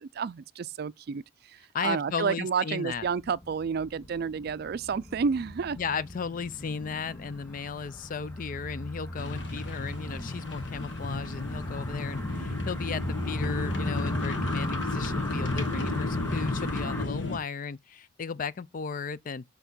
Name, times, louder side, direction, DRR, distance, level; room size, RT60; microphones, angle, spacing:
voice 1, 0.0-5.8, right 6 dB, 60° right, 0.4 m, -30 dB
voice 2, 1.7-3.1 5.8-19.4, left 5 dB, 45° left, 0.4 m, -35 dB
sound 1, 2.9-17.1, left 1 dB, 15° left, 0.8 m, -38 dB
sound 2, 9.2-17.4, left 2 dB, 75° left, 1.5 m, -33 dB
8.0 x 3.5 x 6.0 m
head